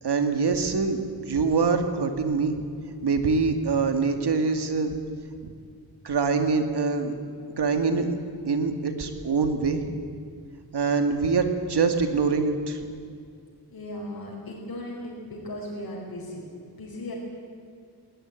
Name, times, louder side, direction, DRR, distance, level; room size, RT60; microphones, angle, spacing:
voice 1, 0.0-2.7 3.0-4.9 5.4-5.5 6.0-7.1 7.6-8.2 8.5-10.0 10.7-12.9, right 4 dB, 80° right, 7 dB, 2.3 m, -24 dB
voice 2, 13.7-16.4 16.7-17.1, left 1 dB, 60° left, -2 dB, 5.0 m, -37 dB
20.5 x 18.0 x 9.1 m, 2.3 s
wide cardioid pair, 145°, 40 cm